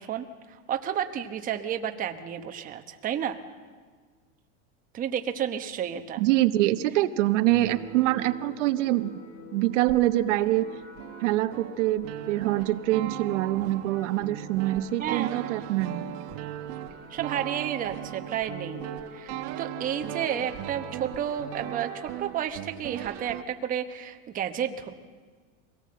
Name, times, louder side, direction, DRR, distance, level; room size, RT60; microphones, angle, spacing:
voice 1, 0.0-3.4 4.9-6.2 15.0-15.6 17.1-18.8 19.1-24.9, right 9 dB, 25° right, 6 dB, 1.0 m, -31 dB
voice 2, 6.2-9.2 9.5-10.6 11.2-16.1, right 15 dB, 75° right, 10 dB, 1.0 m, -25 dB
sound 1, 7.5-10.0 10.3-23.4, right 14 dB, 45° right, 1.1 m, -39 dB
sound 2, 7.7-22.4, left 5 dB, 65° left, 3.1 m, -49 dB
24.0 x 18.0 x 7.7 m, 1.5 s
supercardioid pair, 155°, 36 cm